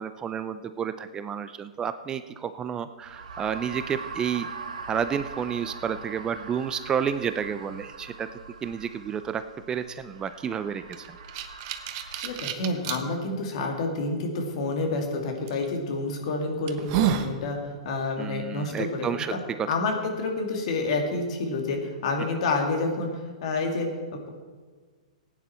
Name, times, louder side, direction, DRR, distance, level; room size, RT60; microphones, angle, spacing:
voice 1, 0.0-4.5 4.9-8.3 8.6-9.4 9.7-11.2 18.2-19.3 19.6-19.7, right 7 dB, 20° right, 11 dB, 0.4 m, -30 dB
sound 1, 3.0-12.4, right 5 dB, 75° right, 2.1 m, -42 dB
sound 2, 10.9-13.0 13.6-13.7 15.5-15.7 16.2-16.3 16.7-17.3, right 9 dB, 40° right, 1.0 m, -28 dB
voice 2, 12.1-19.4 19.7-23.9, left 3 dB, 55° left, 2 dB, 2.4 m, -29 dB
16.5 x 9.4 x 4.4 m, 1.5 s
hypercardioid pair, 125°, 4 cm